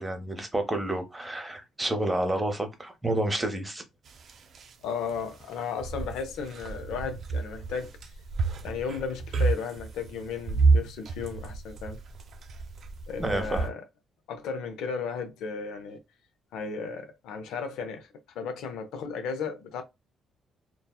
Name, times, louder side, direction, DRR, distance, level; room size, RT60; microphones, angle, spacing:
voice 1, 0.0-3.8 13.2-13.7, right 1 dB, 15° right, 0.8 m, -29 dB
sound 1, 4.1-4.7 5.1-13.7, right 4 dB, 60° right, 0.5 m, -30 dB
voice 2, 4.8-8.1 8.6-12.0 13.1-13.8 14.3-16.0 16.5-18.1 18.3-19.8, left 5 dB, 90° left, 0.5 m, -35 dB
2.7 x 2.2 x 2.2 m
cardioid pair, 90°, 0 cm